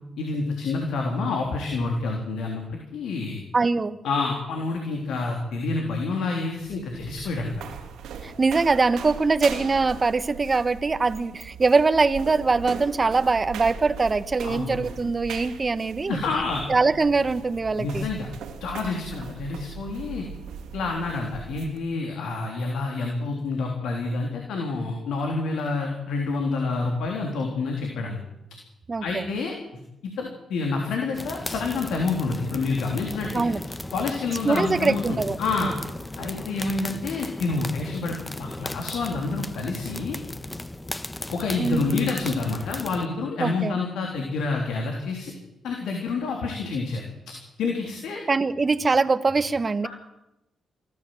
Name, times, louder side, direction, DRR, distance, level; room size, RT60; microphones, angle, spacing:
voice 1, 0.2-3.4 4.0-7.5 14.4-14.8 16.1-16.6 17.8-18.3 18.6-20.2 20.7-28.2 29.0-29.5 30.0-33.4 33.9-35.7 36.2-40.2 41.3-45.3 45.6-47.0 47.6-48.2, left 3 dB, 80° left, 1 dB, 3.5 m, -28 dB
voice 2, 3.5-4.0 8.2-16.2 16.7-18.0 28.9-29.3 33.3-33.6 34.4-35.7 41.6-42.0 43.4-43.8 48.3-49.9, right 4 dB, 35° right, 12 dB, 1.3 m, -23 dB
sound 1, 6.5-21.8, right 7 dB, 80° right, 2.4 m, -39 dB
sound 2, 31.1-43.1, left 1 dB, 15° left, 1.3 m, -36 dB
24.0 x 14.0 x 7.8 m, 0.91 s
supercardioid pair, 60°, 0 cm